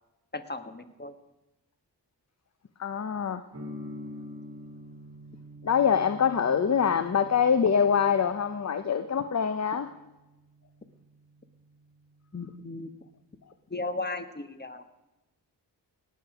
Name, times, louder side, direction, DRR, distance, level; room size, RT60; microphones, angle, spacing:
voice 1, 0.3-1.1 12.3-12.9 13.7-14.8, left 2 dB, 25° left, 9 dB, 1.5 m, -36 dB
voice 2, 2.8-3.4 5.6-9.9, left 7 dB, 40° left, 11 dB, 0.8 m, -24 dB
sound 1, 3.5-13.3, left 1 dB, 30° right, 2.4 m, -47 dB
18.0 x 8.6 x 5.0 m, 1.0 s
cardioid pair, 50°, 44 cm